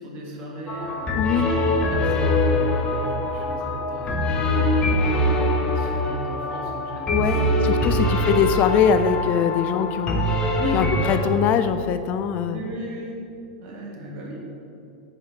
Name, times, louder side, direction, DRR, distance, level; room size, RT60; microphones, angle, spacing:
voice 1, 0.0-5.4 5.7-7.6 8.1-8.2 8.5-8.8 10.3-10.8 12.5-13.2 13.6-14.4, right 1 dB, 50° right, -1 dB, 1.6 m, -36 dB
sound 1, 0.7-11.2, left 1 dB, 30° left, 1.0 m, -23 dB
voice 2, 1.1-1.5 7.1-7.4 7.6-10.3 10.7-12.7, left 8 dB, 45° left, 10 dB, 0.4 m, -22 dB
5.5 x 4.6 x 5.8 m, 2.6 s
hypercardioid pair, 95°, 4 cm